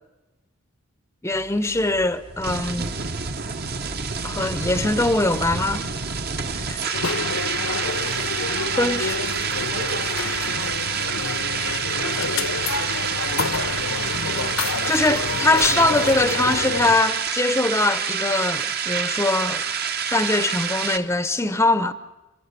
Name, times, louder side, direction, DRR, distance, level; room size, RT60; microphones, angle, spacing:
voice 1, 1.2-3.0 4.2-5.9 6.7-6.9 8.8-9.2 14.1-19.6 20.0-21.9, left 2 dB, 10° left, 0.7 m, -22 dB
sound 1, 1.3-21.0, right 6 dB, 45° right, 1.1 m, -27 dB
sound 2, 6.9-17.0, left 4 dB, 80° left, 1.1 m, -28 dB
voice 2, 7.8-10.1, right 3 dB, 70° right, 3.4 m, -39 dB
30.0 x 12.5 x 8.3 m
head